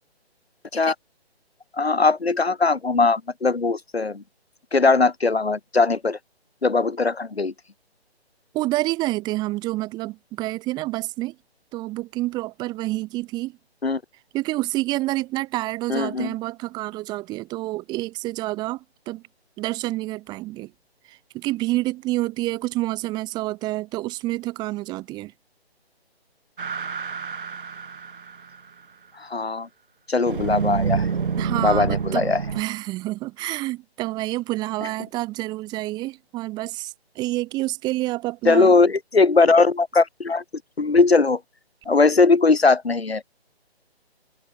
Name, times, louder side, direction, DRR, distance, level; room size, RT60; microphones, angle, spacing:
voice 1, 1.7-4.2 4.7-6.2 6.6-7.5 13.8-14.0 15.9-16.3 29.2-29.7 30.1-31.1 31.6-32.4 38.4-40.4 40.8-41.4 41.9-43.2, left 3 dB, 70° left, 4.5 m, -19 dB
voice 2, 8.5-11.3 11.7-13.6 14.3-19.2 19.6-20.7 21.1-25.3 31.4-38.8, right 18 dB, 15° right, 2.6 m, -28 dB
sound 1, 26.6-28.6 30.3-32.6, right 6 dB, 55° right, 2.1 m, -27 dB
figure-of-eight pair, 145°, 32 cm